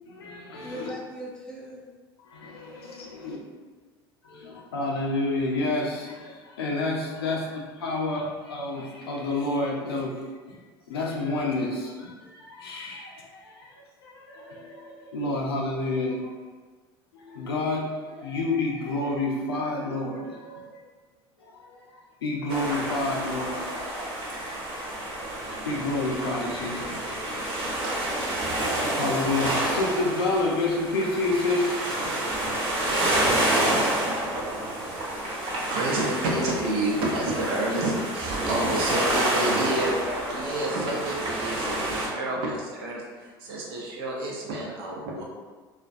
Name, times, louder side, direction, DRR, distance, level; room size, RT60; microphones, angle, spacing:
voice 1, 0.1-0.8 2.3-3.4 4.2-10.1 10.5-10.6 10.9-13.7 14.0-16.3 17.1-20.8 21.5-21.9 22.2-27.2 27.6-28.0 28.4-32.3 35.1-35.6, left 2 dB, 90° left, -1 dB, 0.5 m, -30 dB
voice 2, 0.6-1.9 39.6-40.9, equal, 5° left, -3 dB, 0.6 m, -39 dB
sound 1, 22.5-42.1, right 1 dB, 45° right, 0.9 m, -28 dB
voice 3, 35.5-39.9 40.3-45.2, right 1 dB, 75° right, -3 dB, 0.6 m, -29 dB
2.4 x 2.1 x 2.5 m, 1.4 s
hypercardioid pair, 75°, 12 cm